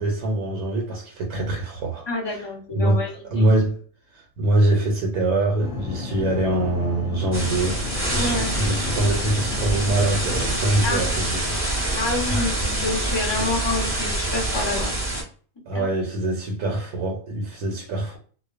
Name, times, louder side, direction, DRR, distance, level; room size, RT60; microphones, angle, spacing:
voice 1, 0.0-2.5 2.8-3.8 4.1-7.9 8.1-11.4 12.3-12.5 13.3-13.6 15.7-18.2, right 1 dB, 85° right, 1.1 m, -24 dB
voice 2, 2.1-3.5 8.2-8.5 10.8-11.0 11.9-14.9 15.7-15.9, left 2 dB, 35° left, 0.4 m, -28 dB
sound 1, 5.6-10.6, left 4 dB, 65° left, 0.9 m, -33 dB
sound 2, 7.3-15.2, right 1 dB, 10° right, 0.7 m, -26 dB
2.4 x 2.2 x 2.3 m
omnidirectional pair, 1.6 m